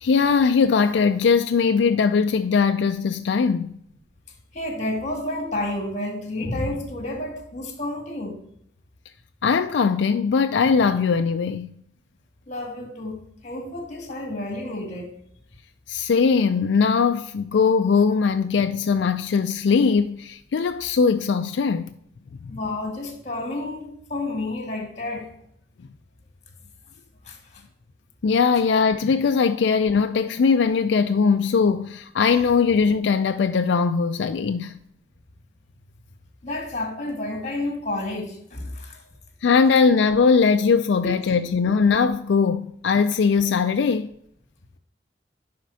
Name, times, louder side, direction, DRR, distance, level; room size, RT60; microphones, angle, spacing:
voice 1, 0.0-3.8 9.4-11.8 15.9-21.9 22.4-22.5 28.2-34.8 39.4-44.1, left 5 dB, 85° left, 0.4 m, -20 dB
voice 2, 4.5-8.4 12.5-15.2 22.5-25.3 27.2-27.6 36.4-39.1 41.0-41.4, left 2 dB, 40° left, 1.7 m, -30 dB
11.0 x 4.3 x 2.7 m
head